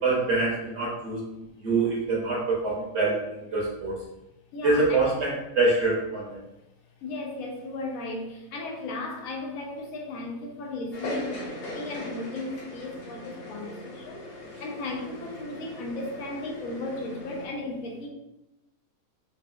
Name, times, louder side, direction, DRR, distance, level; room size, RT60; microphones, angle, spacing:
voice 1, 0.0-1.2 1.6-3.2 3.5-3.9 4.6-6.4, right 3 dB, 55° right, -4 dB, 1.0 m, -25 dB
voice 2, 4.5-5.1 7.0-14.3 14.6-18.1, left 2 dB, 80° left, 0 dB, 1.1 m, -35 dB
sound 1, 10.9-17.5, left 1 dB, 55° left, 0.7 m, -40 dB
3.8 x 2.4 x 2.3 m, 0.90 s
omnidirectional pair, 1.5 m